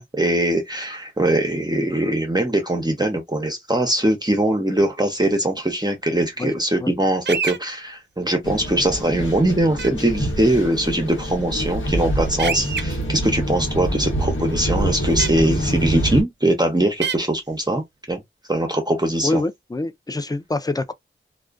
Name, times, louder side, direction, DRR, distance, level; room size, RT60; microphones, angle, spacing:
voice 1, 0.0-18.2 18.5-19.4, right 1 dB, 20° right, 0.7 m, -21 dB
voice 2, 6.4-6.9 19.2-20.9, left 2 dB, 20° left, 0.4 m, -26 dB
sound 1, 7.3-7.6 9.8-9.9 12.4-12.8 15.2-15.3 17.0-17.2, right 6 dB, 55° right, 0.5 m, -25 dB
sound 2, 8.4-16.2, right 1 dB, 70° left, 1.1 m, -25 dB
2.3 x 2.2 x 2.4 m
wide cardioid pair, 50°, 21 cm